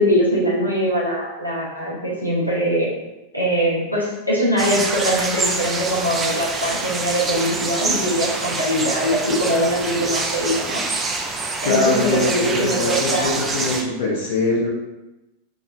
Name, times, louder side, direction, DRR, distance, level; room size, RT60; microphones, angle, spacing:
voice 1, 0.0-2.9 3.3-10.8 11.6-13.4, equal, 90° left, -6 dB, 1.1 m, -22 dB
sound 1, 4.6-13.8, right 3 dB, 15° right, 0.5 m, -26 dB
voice 2, 11.6-14.7, left 2 dB, 55° left, -4 dB, 0.8 m, -22 dB
5.0 x 3.0 x 2.7 m, 0.99 s
figure-of-eight pair, 90°, 0 cm